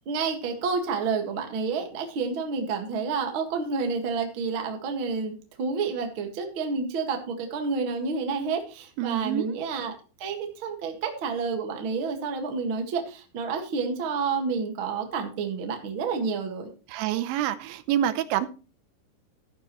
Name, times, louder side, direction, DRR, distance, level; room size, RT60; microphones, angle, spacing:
voice 1, 0.0-9.9 10.2-16.7, right 5 dB, 65° right, 3 dB, 1.2 m, -29 dB
voice 2, 9.0-9.5 16.9-18.5, right 11 dB, 80° right, 13 dB, 3.0 m, -27 dB
13.5 x 9.6 x 3.1 m, 0.35 s
omnidirectional pair, 5.4 m